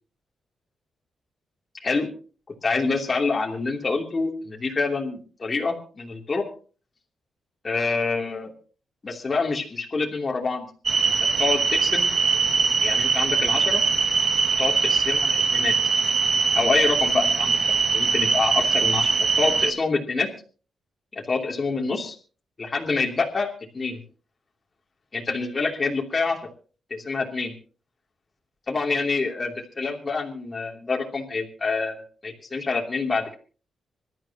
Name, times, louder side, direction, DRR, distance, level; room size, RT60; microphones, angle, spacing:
voice 1, 2.6-6.4 7.6-8.5 9.0-10.7 11.0-12.1 12.8-13.8 14.6-15.7 16.5-17.6 17.9-20.3 21.1-22.2 22.6-23.5 23.7-24.0 25.1-26.5 26.9-27.5 28.7-33.4, left 4 dB, 30° left, -1 dB, 2.9 m, -26 dB
sound 1, 10.9-19.7, right 5 dB, 40° right, 2.1 m, -22 dB
26.0 x 12.5 x 2.9 m, 0.38 s
cardioid pair, 115°, 0 cm